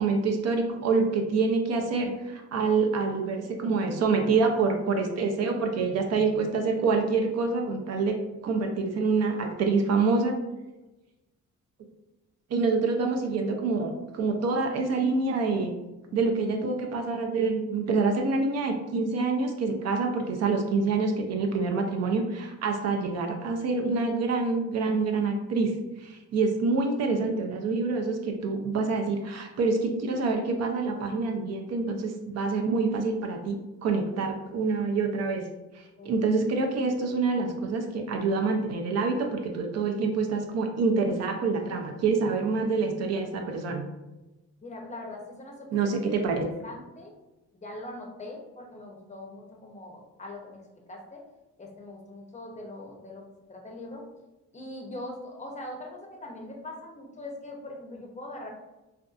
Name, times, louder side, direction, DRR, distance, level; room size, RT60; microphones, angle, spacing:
voice 1, 0.0-8.1 8.4-10.4 12.5-15.7 16.1-25.7 26.0-35.4 35.7-43.9 45.7-46.3, right 4 dB, 60° right, 3 dB, 0.5 m, -26 dB
voice 2, 44.6-47.1 47.6-50.6 50.9-51.2 51.6-53.2 53.5-54.0 54.5-58.5, left 1 dB, 25° left, 0 dB, 0.6 m, -42 dB
2.5 x 2.3 x 2.3 m, 1.0 s
cardioid pair, 90°, 30 cm